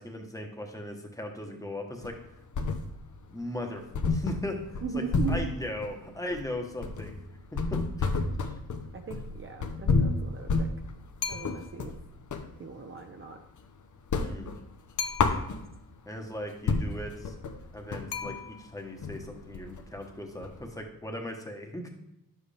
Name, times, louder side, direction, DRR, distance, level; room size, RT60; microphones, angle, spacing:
voice 1, 0.0-2.1 3.3-5.0 5.3-7.1 7.5-8.5 14.2-14.5 16.1-17.3 17.7-21.9, left 1 dB, 10° left, 2 dB, 1.1 m, -38 dB
sound 1, 2.0-3.2 3.5-3.6 3.9-12.5 12.9-13.7 14.0-16.0 16.4-16.5 16.7-20.8, left 4 dB, 60° left, 0.9 m, -30 dB
voice 2, 4.8-5.5 8.9-10.7 11.3-11.9 12.6-13.4, right 5 dB, 35° right, 4 dB, 0.7 m, -38 dB
sound 2, 11.2-11.8 15.0-15.7 18.1-18.9, left 6 dB, 90° left, 0.9 m, -37 dB
11.0 x 7.7 x 3.4 m, 0.84 s
wide cardioid pair, 180°, 34 cm